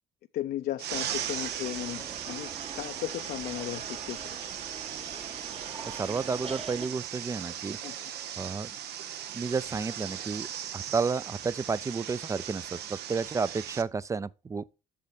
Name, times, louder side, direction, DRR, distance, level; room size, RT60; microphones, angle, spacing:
voice 1, 0.3-4.4 7.8-7.9, left 13 dB, 60° left, 0.5 m, -36 dB
sound 1, 0.8-13.8, right 10 dB, 75° right, 0.9 m, -38 dB
sound 2, 0.9-6.9, right 5 dB, 35° right, 1.2 m, -43 dB
voice 2, 5.8-7.8 8.4-8.7 9.3-10.5 10.7-14.6, right 5 dB, 20° right, 0.4 m, -31 dB
8.6 x 6.6 x 4.4 m
cardioid pair, 110°, 17 cm